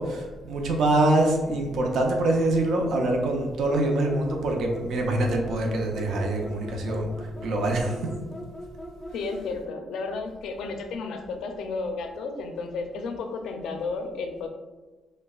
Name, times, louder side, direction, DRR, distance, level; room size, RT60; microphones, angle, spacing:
voice 1, 0.0-8.1, right 2 dB, 70° right, 1 dB, 0.6 m, -25 dB
sound 1, 3.6-9.5, left 1 dB, 15° left, 0.4 m, -41 dB
voice 2, 9.1-14.5, left 4 dB, 75° left, 5 dB, 0.5 m, -32 dB
6.3 x 2.2 x 2.3 m, 1.2 s
cardioid pair, 90°, 0 cm